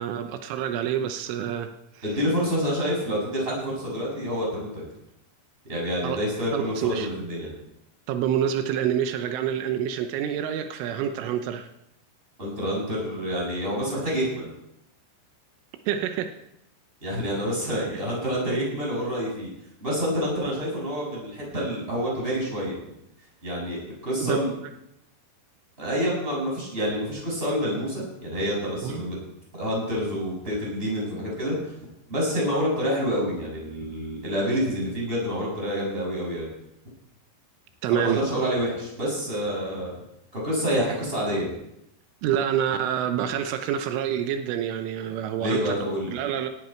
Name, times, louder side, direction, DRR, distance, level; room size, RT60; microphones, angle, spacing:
voice 1, 0.0-1.7 6.0-6.2 6.5-7.1 8.1-11.7 15.9-16.3 24.2-24.4 28.8-29.0 37.8-38.2 42.2-45.7 46.1-46.5, right 9 dB, 85° right, 7 dB, 3.4 m, -27 dB
voice 2, 2.0-4.8 5.7-7.5 12.4-14.5 17.0-19.5 19.8-22.8 23.4-24.5 25.8-29.2 29.5-31.7 32.1-36.5 37.9-39.9 40.3-41.5 45.4-46.1, equal, 10° right, -4 dB, 7.3 m, -27 dB
18.0 x 13.5 x 4.6 m, 0.82 s
omnidirectional pair, 5.5 m